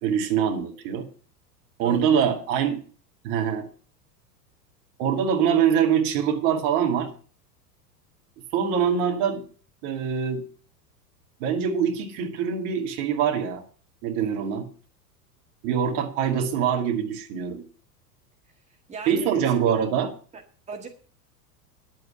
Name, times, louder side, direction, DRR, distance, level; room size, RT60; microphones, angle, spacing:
voice 1, 0.0-1.1 1.8-2.8 3.2-3.7 5.0-7.1 8.5-9.4 9.8-10.4 11.4-13.6 14.0-14.7 15.6-17.6 19.1-20.1, right 8 dB, 45° right, 4 dB, 2.3 m, -24 dB
voice 2, 1.8-2.4 8.5-9.0 18.7-19.5 20.3-20.4 20.7-20.9, right 3 dB, 15° right, 4 dB, 1.5 m, -39 dB
10.5 x 7.9 x 7.0 m, 0.42 s
figure-of-eight pair, 90°, 48 cm